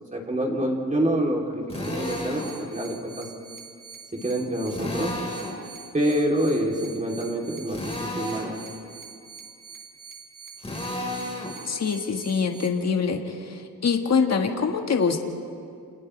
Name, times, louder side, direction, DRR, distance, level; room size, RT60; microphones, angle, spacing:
voice 1, 0.1-3.3 4.2-5.1 5.9-8.5, right 1 dB, 20° right, -2 dB, 3.2 m, -26 dB
Drill, 1.7-2.5 4.7-5.6 7.7-8.6 10.6-11.6, left 1 dB, 15° left, 4.4 m, -32 dB
sound 1, 1.8-12.7, right 6 dB, 60° right, 2.6 m, -45 dB
voice 2, 11.6-15.2, left 5 dB, 45° left, 3 dB, 1.7 m, -24 dB
29.5 x 29.0 x 3.3 m, 2.4 s
cardioid pair, 110°, 37 cm